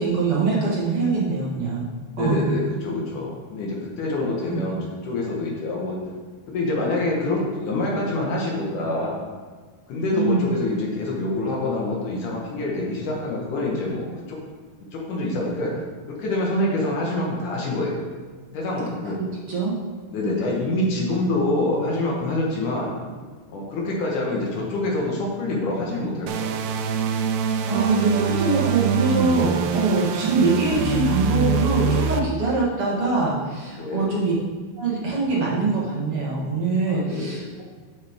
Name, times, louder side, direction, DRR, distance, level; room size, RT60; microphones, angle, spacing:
voice 1, 0.0-1.8 2.2-2.5 4.4-4.6 10.1-10.5 19.5-19.8 27.6-34.3 34.8-37.6, right 3 dB, 60° right, -5 dB, 1.6 m, -23 dB
voice 2, 2.1-6.0 6.5-9.2 9.9-14.4 14.9-15.8 16.1-18.0 18.5-19.2 20.1-22.9 23.5-26.7 33.7-34.1 36.9-37.4, left 2 dB, 65° left, -2 dB, 2.4 m, -26 dB
sound 1, 26.3-32.2, right 6 dB, 85° right, 2.2 m, -24 dB
9.7 x 6.5 x 3.5 m, 1.5 s
omnidirectional pair, 4.5 m